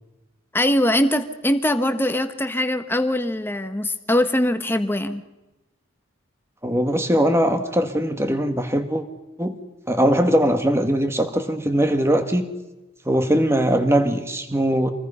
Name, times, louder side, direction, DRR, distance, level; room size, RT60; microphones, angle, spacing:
voice 1, 0.5-5.2, left 1 dB, 10° left, 9 dB, 1.1 m, -22 dB
voice 2, 6.6-9.0 9.4-9.6 9.9-12.5 13.0-14.9, equal, 15° right, 8 dB, 1.6 m, -20 dB
27.5 x 20.5 x 5.6 m, 1.1 s
head